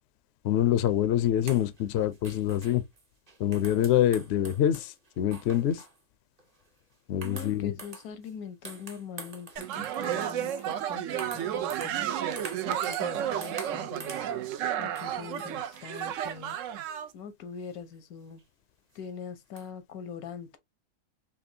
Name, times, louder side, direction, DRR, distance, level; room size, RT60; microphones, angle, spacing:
voice 1, 0.4-2.8 3.4-5.8 7.1-7.7, left 11 dB, 65° left, 0.7 m, -25 dB
sound 1, 1.4-6.0 6.4-6.7 7.2-8.3 8.6-13.1 13.4-14.3 15.0-16.6 17.7-17.8 18.4-18.5 18.9-19.0 19.5-19.7, right 3 dB, 30° right, 1.0 m, -46 dB
voice 2, 7.2-12.1 12.7-14.2 14.8-16.6 17.1-18.4 18.9-20.6, left 7 dB, 85° left, 1.3 m, -43 dB
sound 2, 9.6-17.1, right 10 dB, 70° right, 0.9 m, -32 dB
4.2 x 3.0 x 2.7 m
omnidirectional pair, 1.5 m